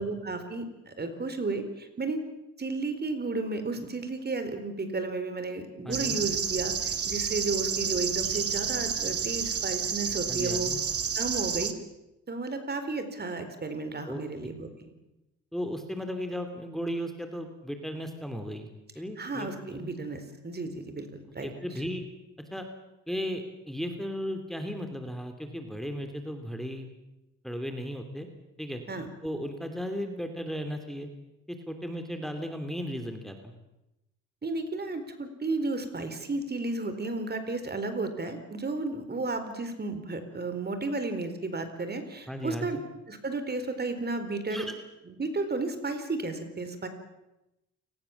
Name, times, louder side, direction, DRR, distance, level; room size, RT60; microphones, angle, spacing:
voice 1, 0.0-2.2 2.6-10.7 11.2-11.7 12.3-14.7 19.2-21.5 28.9-29.1 34.4-42.8 43.1-44.7 45.1-46.9, right 3 dB, 30° right, 9 dB, 4.3 m, -33 dB
voice 2, 5.8-6.2 10.3-10.8 14.1-14.5 15.5-18.7 18.9-19.9 21.4-22.0 22.5-22.7 23.1-26.9 27.4-28.3 28.6-28.8 29.2-31.1 31.5-33.5 42.3-42.8 44.5-44.7, equal, ahead, 6 dB, 3.0 m, -35 dB
sound 1, 5.9-11.7, right 7 dB, 50° right, 2.3 m, -30 dB
29.0 x 19.5 x 7.3 m, 0.94 s
cardioid pair, 90°, 31 cm